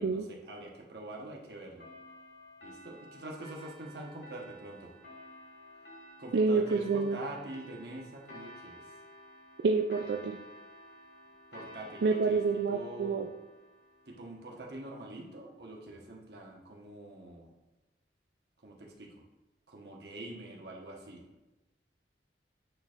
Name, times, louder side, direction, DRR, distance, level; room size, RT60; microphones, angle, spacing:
voice 1, 0.0-1.9 2.6-4.9 6.2-8.9 11.5-12.4 12.7-13.3 14.1-17.5 18.6-19.2 19.7-21.2, right 1 dB, 65° right, 0 dB, 1.1 m, -45 dB
sound 1, 1.8-14.9, equal, 75° left, 2.1 m, -52 dB
voice 2, 6.3-7.2 9.6-10.4 12.0-13.3, right 4 dB, 85° right, 3 dB, 0.4 m, -28 dB
9.1 x 4.3 x 2.5 m, 1.1 s
head